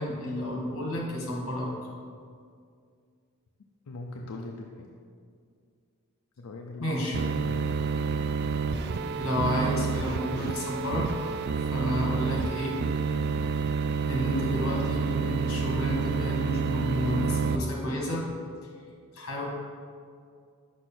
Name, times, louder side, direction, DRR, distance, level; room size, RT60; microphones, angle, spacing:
voice 1, 0.0-1.7 6.8-7.2 9.2-11.1 11.7-12.8 14.1-18.2 19.1-19.4, equal, 65° left, -2 dB, 1.7 m, -31 dB
voice 2, 3.9-4.9 6.4-7.8, left 2 dB, 85° left, 0 dB, 0.5 m, -41 dB
sound 1, 7.1-17.6, right 5 dB, 50° right, 0.3 m, -29 dB
6.3 x 5.3 x 4.4 m, 2.2 s
head